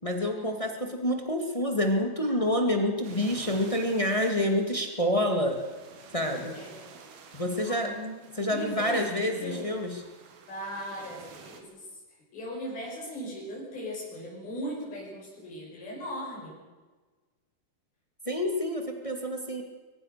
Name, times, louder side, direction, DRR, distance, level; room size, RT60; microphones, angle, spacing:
voice 1, 0.0-5.6 6.1-6.6 7.3-7.9 8.4-10.0 18.2-19.6, left 1 dB, 25° left, 4 dB, 0.7 m, -28 dB
sound 1, 3.0-11.6, right 5 dB, 70° right, 4.1 m, -50 dB
voice 2, 6.5-7.0 7.6-8.2 8.5-9.8 10.5-12.0 12.3-16.6, equal, 65° left, -3 dB, 7.5 m, -38 dB
23.0 x 20.5 x 6.7 m, 1.3 s
omnidirectional pair, 4.7 m